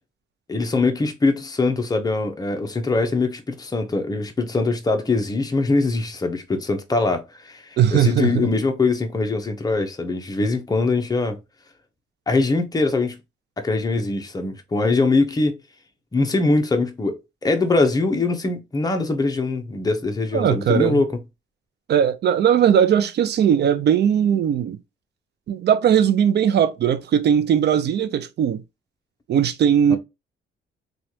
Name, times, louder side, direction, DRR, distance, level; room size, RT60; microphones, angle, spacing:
voice 1, 0.5-11.4 12.3-13.2 13.6-15.6 16.1-21.2 29.9-30.0, left 3 dB, 20° left, 0.8 m, -22 dB
voice 2, 7.8-8.5 20.3-21.0 21.9-24.8 25.5-28.6 29.3-30.0, right 9 dB, 60° right, 0.5 m, -19 dB
3.1 x 2.4 x 2.7 m
cardioid pair, 90°, 20 cm